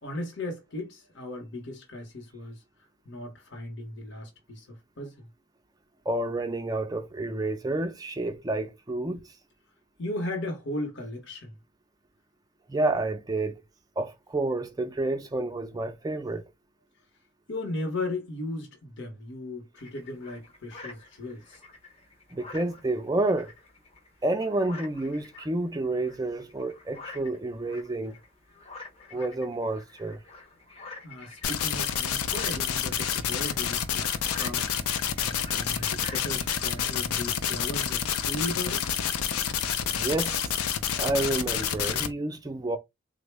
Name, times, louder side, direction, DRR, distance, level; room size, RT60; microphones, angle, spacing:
voice 1, 0.0-2.6 3.1-5.3 10.0-11.5 17.5-21.6 31.0-34.0 34.4-34.7 35.2-38.9, left 1 dB, 55° left, 0.8 m, -36 dB
voice 2, 6.1-9.3 12.7-13.6 14.0-16.4 22.3-23.5 24.2-28.2 29.1-30.2 39.8-40.5 41.0-42.8, right 2 dB, 15° right, 0.3 m, -29 dB
sound 1, 19.8-36.9, left 3 dB, 25° left, 0.6 m, -47 dB
sound 2, 31.4-42.1, left 8 dB, 80° left, 0.5 m, -28 dB
3.7 x 2.0 x 3.2 m
head